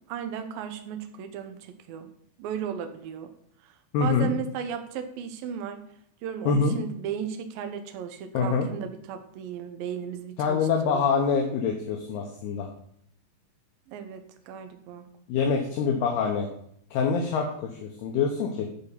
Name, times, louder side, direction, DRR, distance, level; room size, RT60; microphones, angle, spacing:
voice 1, 0.1-2.1 2.4-3.3 3.6-3.7 4.0-5.9 6.2-11.0 13.9-15.1, right 8 dB, 80° right, 7 dB, 2.1 m, -35 dB
voice 2, 3.9-4.3 6.5-6.8 8.3-8.7 10.4-12.7 15.3-16.5 16.9-18.7, left 5 dB, 75° left, 2 dB, 2.7 m, -25 dB
11.0 x 4.9 x 5.7 m, 0.68 s
omnidirectional pair, 5.2 m